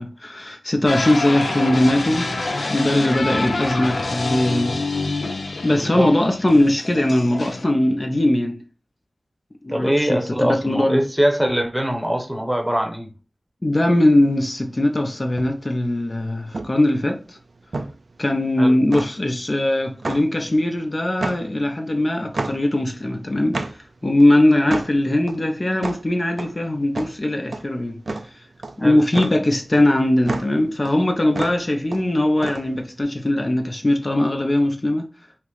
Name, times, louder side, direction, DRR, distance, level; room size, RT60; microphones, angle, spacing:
voice 1, 0.0-2.4 2.7-4.8 5.6-8.6 9.6-11.0 13.6-17.4 18.2-28.5 28.8-35.1, left 1 dB, 40° left, 0.6 m, -20 dB
sound 1, 0.9-7.6, left 3 dB, 90° left, 0.5 m, -27 dB
voice 2, 5.8-6.1 9.7-13.1 18.6-18.8 28.8-29.0, equal, 5° right, 0.9 m, -22 dB
sound 2, 14.5-33.0, right 2 dB, 75° right, 0.4 m, -31 dB
5.8 x 2.0 x 3.1 m
wide cardioid pair, 55°, 0 cm